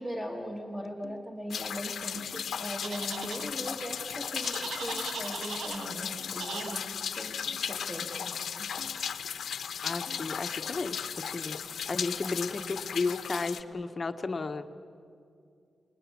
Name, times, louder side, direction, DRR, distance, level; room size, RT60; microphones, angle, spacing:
voice 1, 0.0-8.5, equal, 5° right, 1 dB, 1.7 m, -39 dB
sound 1, 0.8-1.6 2.0-2.8 3.3-4.1 4.7-5.1 5.4-5.5 5.7-6.7 7.3-8.0 8.5-9.3 9.9-10.3, left 4 dB, 55° left, 1.0 m, -50 dB
sound 2, 1.5-13.6, left 7 dB, 80° left, 1.0 m, -36 dB
sound 3, 2.8-3.4 4.4-5.9 6.4-6.8, right 6 dB, 75° right, 1.0 m, -39 dB
voice 2, 9.8-11.6 11.9-14.7, left 3 dB, 30° left, 9 dB, 1.1 m, -33 dB
28.0 x 20.0 x 8.6 m, 2.5 s
wide cardioid pair, 160°, 0 cm